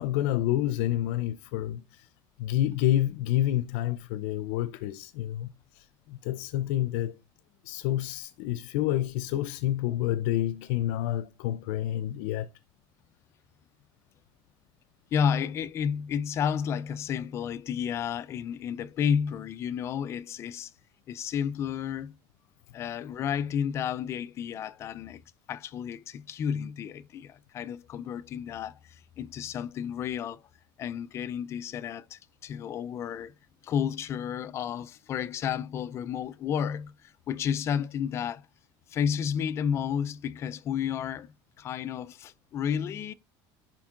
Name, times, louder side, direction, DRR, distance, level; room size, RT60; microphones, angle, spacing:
voice 1, 0.0-2.1 2.4-7.2 7.6-12.5, left 13 dB, 85° left, 0.6 m, -29 dB
voice 2, 15.1-20.7 21.1-22.2 22.7-25.2 25.5-30.4 30.8-33.3 33.6-38.5 38.9-43.1, left 8 dB, 30° left, 0.4 m, -31 dB
10.5 x 4.4 x 3.8 m
cardioid pair, 180°, 9 cm